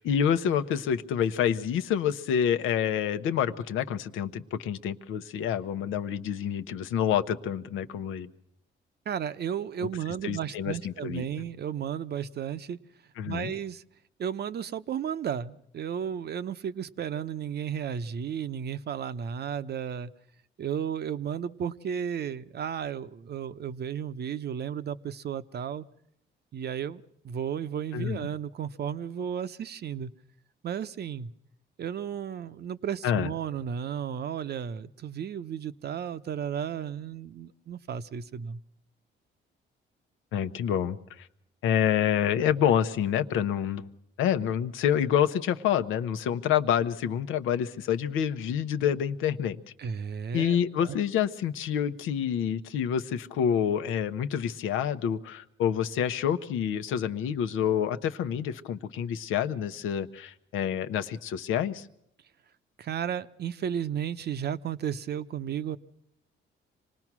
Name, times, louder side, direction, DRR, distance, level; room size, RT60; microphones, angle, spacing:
voice 1, 0.0-8.3 10.2-11.2 13.2-13.5 27.9-28.2 33.0-33.3 40.3-41.3 41.6-43.9 44.2-49.6 50.3-61.9, left 9 dB, 90° left, 10 dB, 0.9 m, -27 dB
voice 2, 9.1-12.8 13.2-13.8 14.2-20.1 20.6-25.9 26.5-30.1 30.6-31.3 31.8-38.6 49.8-50.9 62.8-65.8, right 8 dB, 55° right, 12 dB, 0.8 m, -33 dB
26.0 x 19.0 x 6.1 m, 0.76 s
cardioid pair, 90°, 20 cm